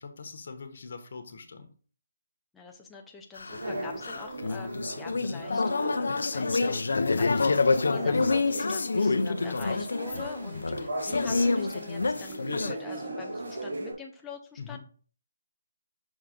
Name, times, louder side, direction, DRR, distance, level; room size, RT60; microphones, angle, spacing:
voice 1, 0.0-1.7 14.6-14.8, left 5 dB, 50° left, 6 dB, 1.0 m, -42 dB
voice 2, 2.5-14.8, left 4 dB, 5° left, -1 dB, 0.7 m, -45 dB
sound 1, 3.4-12.7, left 3 dB, 80° left, 0.5 m, -27 dB
sound 2, 3.5-13.9, right 1 dB, 70° right, 3.5 m, -38 dB
6.2 x 3.6 x 5.1 m, 0.42 s
hypercardioid pair, 170°, 0 cm